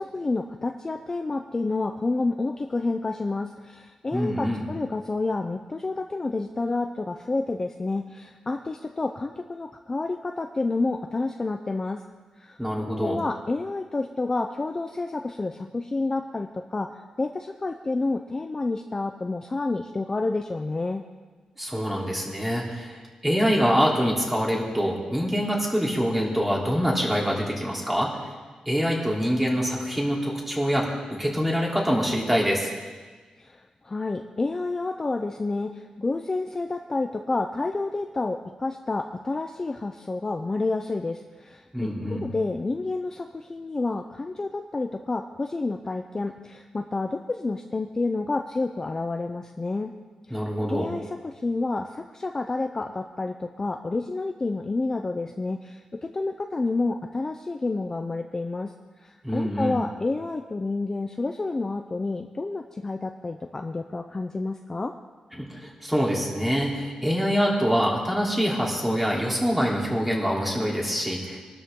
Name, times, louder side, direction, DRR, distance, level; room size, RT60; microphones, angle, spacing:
voice 1, 0.0-12.0 12.4-12.6 12.9-21.0 33.4-49.9 50.3-64.9, left 3 dB, 25° left, 5 dB, 0.6 m, -29 dB
voice 2, 4.1-4.6 12.6-13.2 21.6-28.3 28.6-32.7 41.7-42.3 50.3-50.9 59.2-59.7 65.4-71.4, equal, 5° right, -3 dB, 3.4 m, -25 dB
24.0 x 12.5 x 3.8 m, 1.4 s
wide cardioid pair, 135°, 2 cm